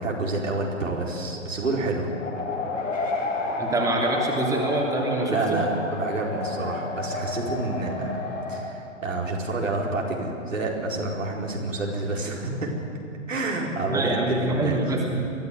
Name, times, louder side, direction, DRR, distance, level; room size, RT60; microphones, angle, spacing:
voice 1, 0.0-2.1 5.3-12.7 13.3-14.8, right 2 dB, 80° right, -2 dB, 4.4 m, -28 dB
sound 1, 2.1-8.6, left 3 dB, 80° left, 5.7 m, -31 dB
voice 2, 3.6-5.6 13.9-15.3, right 2 dB, 10° right, -2 dB, 3.2 m, -25 dB
22.5 x 14.0 x 9.4 m, 2.5 s
figure-of-eight pair, 115°, 38 cm